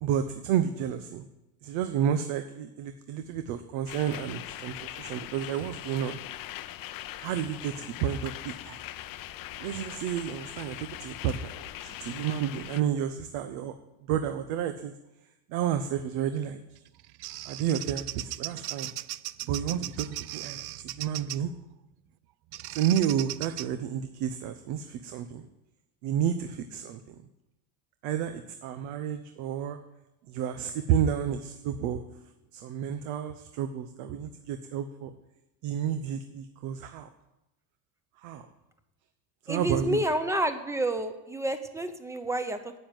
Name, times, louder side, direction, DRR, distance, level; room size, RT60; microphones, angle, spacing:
voice 1, 0.0-1.2 1.6-6.2 7.2-8.8 9.6-11.5 11.8-13.7 14.1-14.9 15.5-16.6 17.4-18.9 19.5-20.1 20.3-21.5 22.7-25.4 26.0-27.1 28.0-29.8 30.3-32.0 32.5-35.1 35.6-37.1 38.2-38.5 39.4-40.0, right 9 dB, 75° right, 8 dB, 1.0 m, -31 dB
sound 1, 3.9-12.8, left 14 dB, 45° left, 0.7 m, -41 dB
Bird vocalization bird call bird song, 16.8-21.5 22.5-23.7, right 16 dB, 55° right, 0.6 m, -38 dB
voice 2, 39.5-42.7, right 1 dB, 5° right, 8 dB, 0.8 m, -29 dB
9.8 x 8.0 x 9.2 m, 0.95 s
cardioid pair, 140°, 47 cm